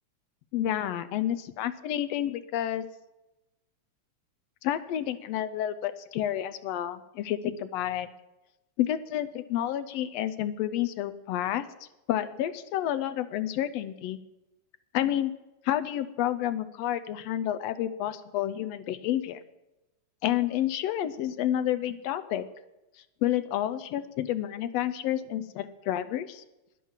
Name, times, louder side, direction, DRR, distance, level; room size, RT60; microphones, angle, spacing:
voice 1, 0.5-2.8 4.6-8.1 8.8-11.6 12.1-14.2 14.9-15.3 15.6-19.4 20.2-22.4 23.2-26.4, left 12 dB, 75° left, 12 dB, 1.6 m, -30 dB
11.0 x 10.5 x 7.3 m, 0.96 s
omnidirectional pair, 3.3 m